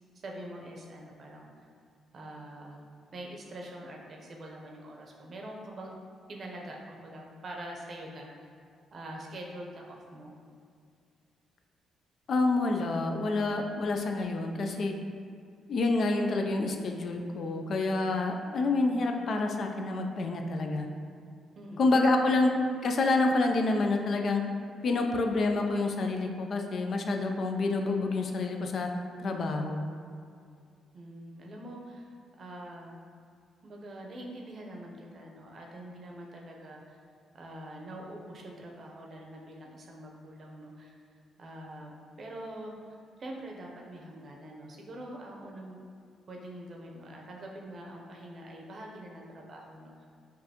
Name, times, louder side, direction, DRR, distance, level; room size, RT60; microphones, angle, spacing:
voice 1, 0.1-1.5 2.1-2.8 3.1-6.0 6.3-8.5 8.9-10.3 21.6-21.9 22.2-22.3 30.9-33.0 33.6-37.0 37.3-40.9 41.4-41.9 42.2-42.7 43.2-45.8 46.3-50.1, right 1 dB, 50° right, 0 dB, 0.7 m, -44 dB
voice 2, 12.3-14.9 15.7-20.9 21.8-22.6 22.8-24.4 24.8-28.9 29.2-29.9, left 3 dB, 55° left, 3 dB, 0.4 m, -28 dB
5.3 x 2.6 x 2.8 m, 2.3 s
cardioid pair, 90°, 0 cm